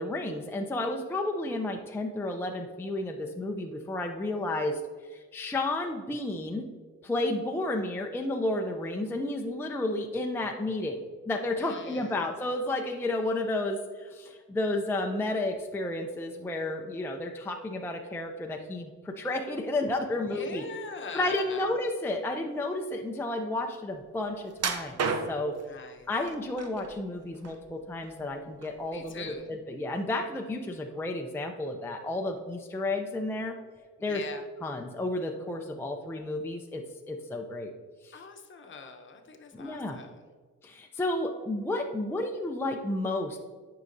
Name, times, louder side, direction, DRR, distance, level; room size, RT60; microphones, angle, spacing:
voice 1, 0.0-4.8 5.1-6.6 7.0-11.0 11.3-20.6 21.1-25.0 25.3-25.5 26.1-33.5 34.0-34.2 34.6-37.7 38.0-38.1 39.5-40.0 40.6-43.4, left 2 dB, 10° left, 3 dB, 0.5 m, -32 dB
voice 2, 11.6-12.3 20.1-21.7 25.6-26.1 28.9-29.5 34.0-34.4 38.1-40.2, left 5 dB, 40° left, 4 dB, 0.9 m, -43 dB
sound 1, 24.6-25.6 26.3-26.9 27.3-28.3 28.6-28.8 29.3-29.4, right 5 dB, 55° right, 0.8 m, -32 dB
9.5 x 4.7 x 2.6 m, 1.5 s
cardioid pair, 90°, 30 cm